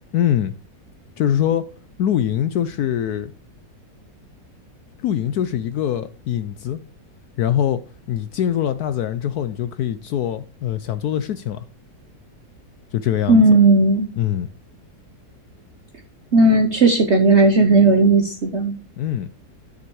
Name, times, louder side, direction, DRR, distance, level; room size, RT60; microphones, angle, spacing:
voice 1, 0.1-0.5 1.2-1.7 2.0-3.3 5.0-6.8 7.4-7.8 8.1-11.6 12.9-13.4 14.2-14.5 19.0-19.3, left 10 dB, 70° left, 1.0 m, -23 dB
voice 2, 13.3-14.1 16.3-18.7, right 2 dB, 45° right, 1.1 m, -15 dB
9.8 x 6.9 x 4.7 m
omnidirectional pair, 1.9 m